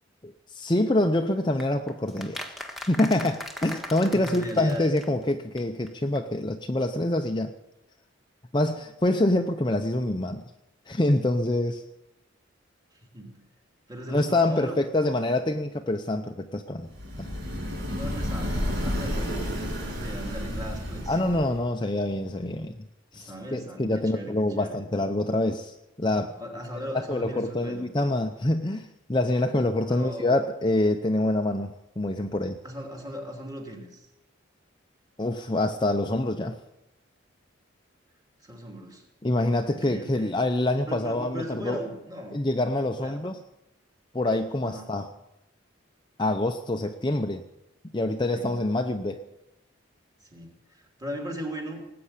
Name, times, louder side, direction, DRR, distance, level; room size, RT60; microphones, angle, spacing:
voice 1, 0.2-2.4 2.9-7.5 8.5-10.4 10.9-11.8 14.1-16.9 17.2-17.3 21.1-22.8 23.1-26.4 26.9-32.6 35.2-36.6 39.2-41.8 42.3-43.4 44.1-45.1 46.2-47.4 47.9-49.2, left 1 dB, 20° left, 6 dB, 0.6 m, -26 dB
sound 1, 1.6-5.3 5.6-5.7 5.9-6.0 6.1-6.2, left 1 dB, ahead, 1.4 m, -39 dB
voice 2, 4.1-4.9 12.9-13.3 13.9-14.8 17.9-21.2 23.1-24.8 26.4-27.9 29.9-30.5 32.6-34.1 38.4-39.0 39.7-40.4 40.9-42.4 43.0-43.3 44.6-44.9 48.0-48.6 50.2-51.8, equal, 20° right, 1 dB, 2.9 m, -38 dB
sound 2, 16.9-21.6, equal, 60° right, 6.1 m, -31 dB
19.0 x 8.6 x 8.2 m, 0.91 s
head